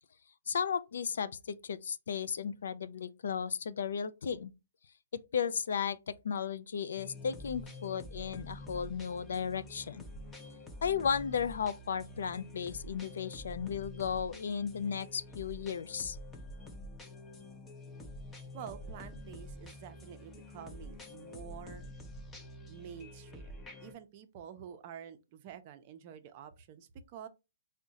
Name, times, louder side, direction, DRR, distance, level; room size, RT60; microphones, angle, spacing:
voice 1, 0.5-4.5 5.1-10.0 10.8-16.2, left 7 dB, 75° left, 0.4 m, -35 dB
sound 1, 7.0-23.9, left 1 dB, 10° left, 0.5 m, -48 dB
voice 2, 18.5-21.9 22.7-27.3, right 8 dB, 35° right, 0.5 m, -48 dB
3.6 x 2.1 x 3.9 m
hypercardioid pair, 150°, 0 cm